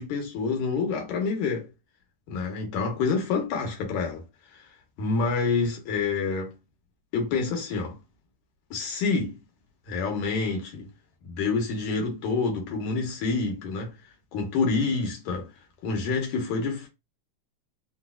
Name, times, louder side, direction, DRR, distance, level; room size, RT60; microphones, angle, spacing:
voice 1, 0.0-1.7 2.3-4.2 5.0-6.5 7.1-8.0 8.7-9.4 9.9-10.9 11.2-13.9 14.3-15.5 15.8-16.9, left 4 dB, 90° left, 2.4 m, -27 dB
5.0 x 2.1 x 2.3 m
omnidirectional pair, 3.4 m